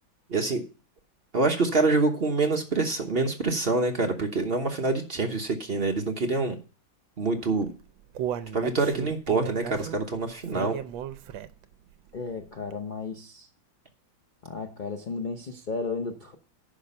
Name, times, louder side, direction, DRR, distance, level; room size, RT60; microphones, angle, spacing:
voice 1, 0.3-0.6 1.3-6.6 7.2-7.7 8.5-10.8, right 3 dB, 40° right, 1.0 m, -26 dB
Human voice, 7.5-11.7 12.1-12.2 12.7-12.8, right 10 dB, 75° right, 1.4 m, -35 dB
voice 2, 12.1-13.5 14.4-16.3, left 4 dB, 75° left, 0.4 m, -34 dB
10.0 x 6.1 x 5.5 m
omnidirectional pair, 2.2 m